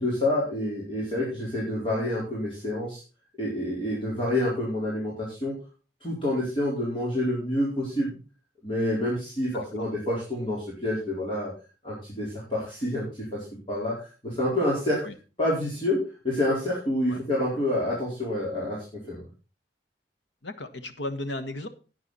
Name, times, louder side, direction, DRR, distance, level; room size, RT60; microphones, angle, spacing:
voice 1, 0.0-3.0 3.4-5.5 6.0-8.2 8.6-11.5 11.8-15.0 15.4-16.0 16.2-19.3, left 1 dB, 30° left, -6 dB, 4.4 m, -28 dB
voice 2, 9.5-9.9 15.0-15.1 17.1-17.2 20.4-21.7, left 2 dB, 90° left, 9 dB, 1.4 m, -35 dB
11.5 x 9.6 x 4.2 m, 0.34 s
head